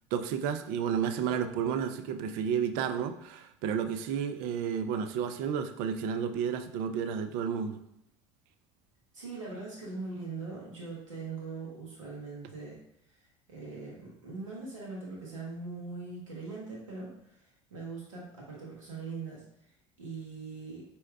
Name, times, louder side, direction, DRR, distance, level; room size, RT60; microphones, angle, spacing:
voice 1, 0.1-7.8, right 7 dB, 60° right, 9 dB, 0.4 m, -31 dB
voice 2, 9.1-12.8 13.1-13.2 13.5-20.8, right 4 dB, 90° right, -3 dB, 1.1 m, -41 dB
4.3 x 2.8 x 2.3 m, 0.74 s
hypercardioid pair, 70°, 16 cm